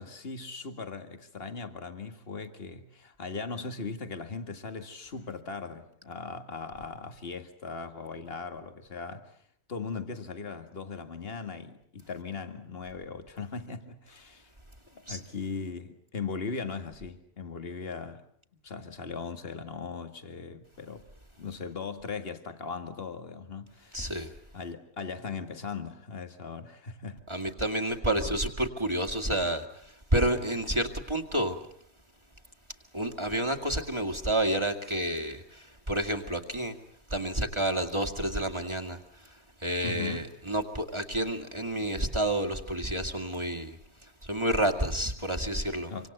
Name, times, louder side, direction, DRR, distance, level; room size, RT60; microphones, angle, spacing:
voice 1, 0.0-9.3 9.7-14.5 14.9-18.2 18.6-21.1 21.4-24.3 24.5-27.2 39.8-40.3 45.9-46.1, left 4 dB, 65° left, 2.2 m, -39 dB
voice 2, 23.9-24.3 27.3-31.6 32.9-36.8 37.1-43.8 44.2-46.1, right 1 dB, 25° right, 2.3 m, -30 dB
26.5 x 25.5 x 8.0 m
omnidirectional pair, 1.1 m